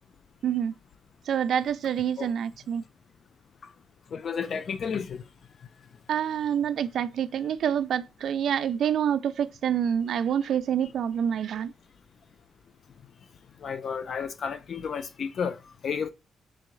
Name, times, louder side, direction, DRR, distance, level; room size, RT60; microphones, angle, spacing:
voice 1, 0.4-0.7 1.3-2.8 6.1-11.7, right 9 dB, 70° right, 0.3 m, -27 dB
voice 2, 4.1-5.2 13.6-15.6 15.8-16.1, left 6 dB, 60° left, 0.4 m, -31 dB
3.6 x 3.4 x 3.0 m
cardioid pair, 95°, 0 cm